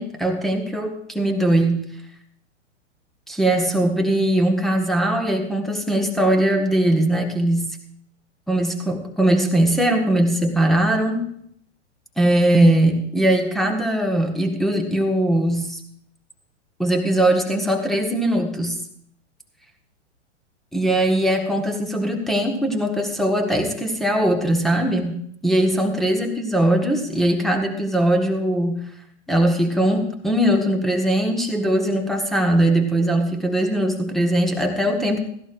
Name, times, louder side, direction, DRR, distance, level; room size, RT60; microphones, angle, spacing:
voice 1, 0.0-1.9 3.3-7.8 8.5-11.3 12.2-15.8 16.8-18.7 20.7-25.2 25.4-28.8 29.3-35.2, right 1 dB, ahead, 4 dB, 1.4 m, -20 dB
16.5 x 14.5 x 2.5 m, 0.68 s
figure-of-eight pair, 110°, 37 cm